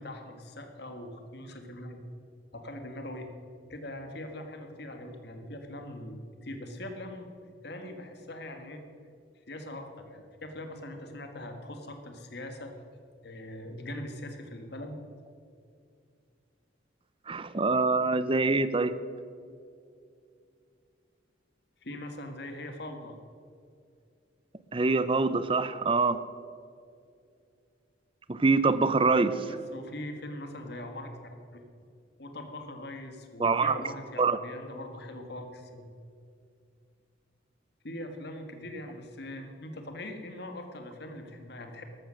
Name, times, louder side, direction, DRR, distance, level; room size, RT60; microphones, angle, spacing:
voice 1, 0.0-2.0 2.5-3.3 3.7-7.3 7.6-8.8 9.5-12.7 13.2-15.0 21.8-23.2 29.4-31.6 32.2-35.9 37.8-41.8, left 1 dB, 60° left, 5 dB, 1.7 m, -41 dB
voice 2, 17.3-19.0 24.7-26.2 28.3-29.5 33.4-33.7 34.2-34.4, right 3 dB, 30° right, 14 dB, 0.6 m, -25 dB
13.5 x 12.5 x 6.3 m, 2.4 s
head